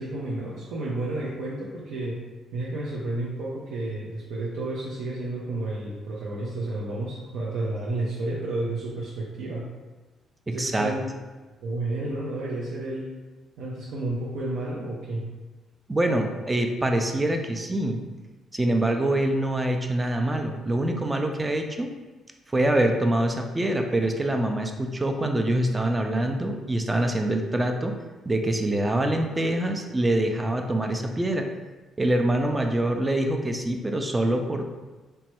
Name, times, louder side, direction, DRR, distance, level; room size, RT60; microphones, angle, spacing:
voice 1, 0.0-2.2 2.5-9.7 10.5-11.1 11.6-13.1 13.6-15.2, right 2 dB, 85° right, -5 dB, 0.5 m, -31 dB
voice 2, 10.5-10.9 15.9-18.0 18.5-21.9 22.5-28.0 28.3-31.5 32.0-34.7, right 1 dB, 15° right, 4 dB, 0.3 m, -25 dB
3.0 x 2.2 x 2.9 m, 1.2 s
cardioid pair, 90°, 0 cm